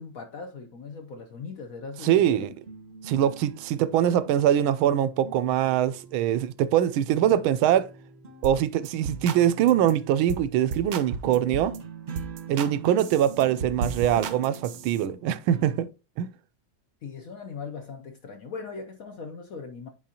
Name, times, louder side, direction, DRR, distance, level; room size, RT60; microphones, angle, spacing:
voice 1, 0.0-2.5 17.0-19.9, left 5 dB, 65° left, 0.9 m, -39 dB
voice 2, 2.0-2.5 3.0-7.9 8.4-11.7 12.5-15.9 16.2-16.3, right 11 dB, 80° right, 1.4 m, -23 dB
sound 1, 2.3-6.7 6.9-15.8, right 5 dB, 40° right, 0.9 m, -43 dB
sound 2, 8.4-8.6 8.8-9.4 9.7-9.9 10.3-10.5 10.7-11.8 12.2-12.7 13.0-15.0, right 5 dB, 65° right, 0.9 m, -34 dB
9.4 x 4.7 x 2.8 m
omnidirectional pair, 2.2 m